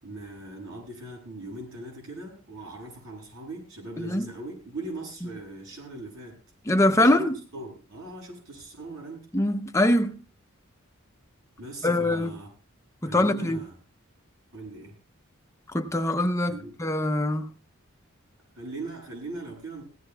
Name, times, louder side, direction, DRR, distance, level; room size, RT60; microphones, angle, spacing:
voice 1, 0.0-6.4 6.9-7.2 7.5-9.3 11.6-12.5 13.0-13.8 14.5-15.0 16.5-16.8 18.6-19.8, right 2 dB, 70° right, 7.9 m, -40 dB
voice 2, 6.7-7.3 9.3-10.2 11.8-12.3 13.0-13.6 15.7-17.5, left 1 dB, 15° left, 0.7 m, -23 dB
19.0 x 16.5 x 2.3 m
head